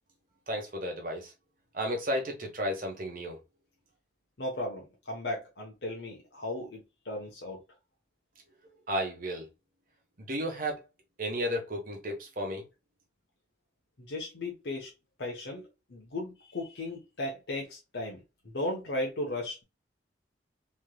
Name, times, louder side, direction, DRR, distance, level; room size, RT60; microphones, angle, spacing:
voice 1, 0.5-1.3 1.7-3.4 8.9-9.5 10.3-10.8 11.2-12.6, equal, 45° right, 1.0 m, -33 dB
voice 2, 4.4-7.6 14.0-14.9 15.2-18.2 18.5-19.6, left 1 dB, 65° left, 0.9 m, -36 dB
3.4 x 3.0 x 2.2 m
head